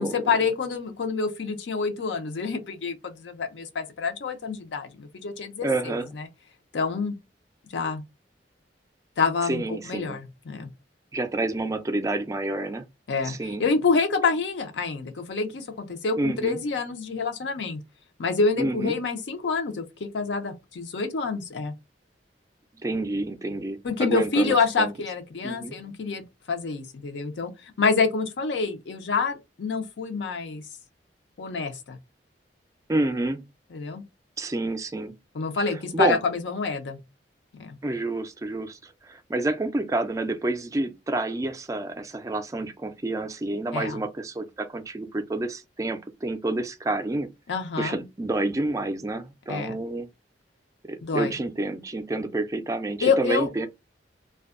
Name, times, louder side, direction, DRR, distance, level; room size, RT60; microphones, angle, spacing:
voice 1, 0.0-6.0 6.7-7.2 7.7-8.0 9.2-10.7 13.1-17.8 18.2-21.7 23.8-30.6 31.4-32.0 33.7-34.0 35.3-37.0 37.6-37.8 43.7-44.0 47.5-48.0 49.5-49.8 51.0-51.3 53.0-53.5, left 4 dB, 75° left, 0.5 m, -27 dB
voice 2, 5.6-6.1 9.5-10.2 11.1-12.8 13.2-13.6 16.2-16.6 18.6-19.0 22.8-24.9 25.4-25.7 32.9-33.4 34.4-35.1 35.6-36.2 37.8-47.3 47.8-50.1 50.9-53.7, right 2 dB, 20° right, 0.3 m, -29 dB
2.6 x 2.2 x 2.4 m
head